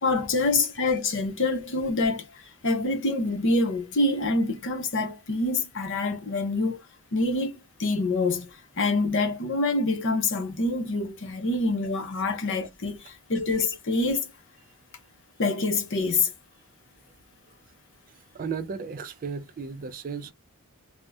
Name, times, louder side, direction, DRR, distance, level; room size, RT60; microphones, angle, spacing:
voice 1, 0.0-2.2 2.6-6.8 7.1-8.5 8.8-14.3 15.4-16.3, left 2 dB, 60° left, 0.8 m, -26 dB
voice 2, 18.3-20.3, right 5 dB, 40° right, 0.3 m, -34 dB
2.6 x 2.1 x 3.3 m
head